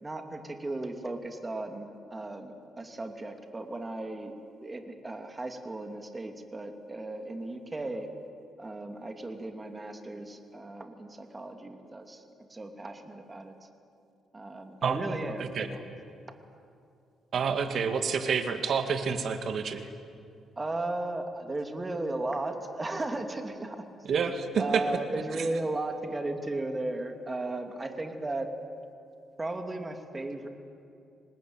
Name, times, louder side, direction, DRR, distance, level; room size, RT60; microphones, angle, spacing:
voice 1, 0.0-4.3 4.6-8.1 8.6-12.2 12.5-13.5 14.3-15.8 20.6-23.9 24.6-28.5 29.4-30.5, right 2 dB, 20° right, 5 dB, 2.9 m, -35 dB
voice 2, 14.8-15.2 15.6-15.7 17.3-19.9 24.1-24.8 25.3-25.4, right 6 dB, 60° right, 8 dB, 2.1 m, -28 dB
26.5 x 19.5 x 9.1 m, 2.5 s
cardioid pair, 90°, 0 cm